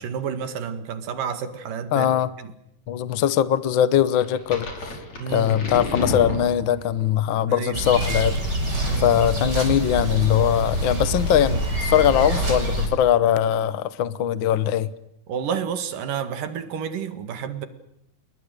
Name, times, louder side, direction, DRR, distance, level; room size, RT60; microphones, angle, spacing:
voice 1, 0.0-2.1 2.4-2.5 5.2-5.6 7.5-7.8 8.9-9.2 15.3-17.7, right 7 dB, 90° right, 3.6 m, -30 dB
voice 2, 1.9-2.3 2.9-4.7 5.3-8.4 9.0-14.9, left 10 dB, 75° left, 1.1 m, -21 dB
sound 1, 4.2-7.1, left 2 dB, 55° left, 6.4 m, -30 dB
sound 2, 7.7-12.9, right 1 dB, 30° right, 7.0 m, -25 dB
28.5 x 22.0 x 6.7 m
omnidirectional pair, 3.7 m